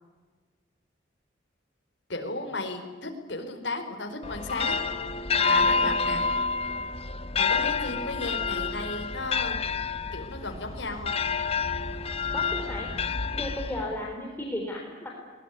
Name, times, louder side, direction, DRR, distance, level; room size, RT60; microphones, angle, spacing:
voice 1, 2.1-4.8 5.3-6.2 7.3-9.6 10.1-11.1, left 2 dB, 65° left, 4 dB, 4.6 m, -34 dB
sound 1, 4.2-14.1, left 4 dB, 30° left, 0.9 m, -28 dB
voice 2, 12.3-12.9 13.3-15.1, left 1 dB, 10° left, -1 dB, 3.7 m, -34 dB
22.5 x 21.0 x 9.6 m, 1.5 s
head